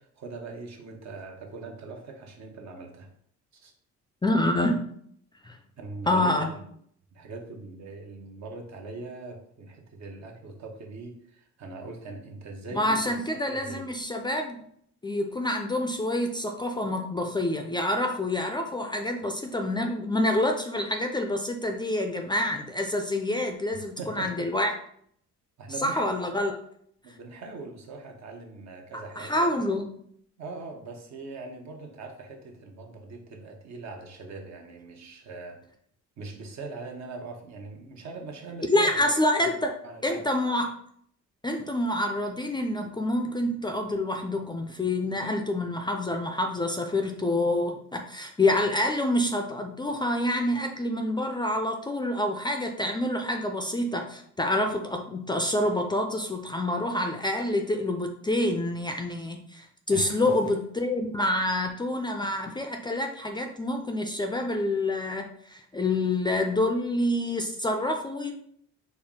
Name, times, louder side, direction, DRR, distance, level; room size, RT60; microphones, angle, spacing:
voice 1, 0.0-3.1 3.5-3.7 5.8-6.7 7.1-13.2 13.5-14.0 23.7-24.5 25.6-26.0 27.0-29.5 30.4-35.6 36.2-39.1 39.4-39.5 39.8-40.2 59.9-60.5, right 3 dB, 65° right, 2 dB, 0.9 m, -41 dB
voice 2, 4.2-4.8 5.4-5.6 6.1-6.5 12.7-14.6 15.0-24.7 25.8-26.5 29.2-29.8 38.7-39.8 40.0-40.7 41.4-68.3, left 1 dB, 15° left, 4 dB, 0.4 m, -27 dB
4.3 x 2.0 x 3.7 m, 0.66 s
cardioid pair, 90°, 30 cm